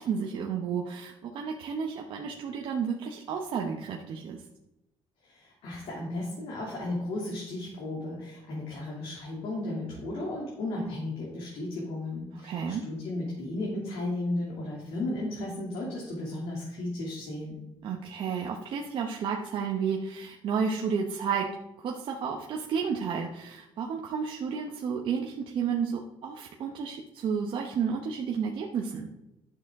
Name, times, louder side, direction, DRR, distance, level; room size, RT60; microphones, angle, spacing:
voice 1, 0.0-4.4 12.4-12.8 17.8-21.5 21.8-29.1, right 6 dB, 55° right, 0 dB, 1.0 m, -32 dB
voice 2, 5.2-17.6, left 2 dB, 65° left, -4 dB, 2.8 m, -34 dB
11.0 x 6.7 x 3.7 m, 0.91 s
cardioid pair, 140°, 10 cm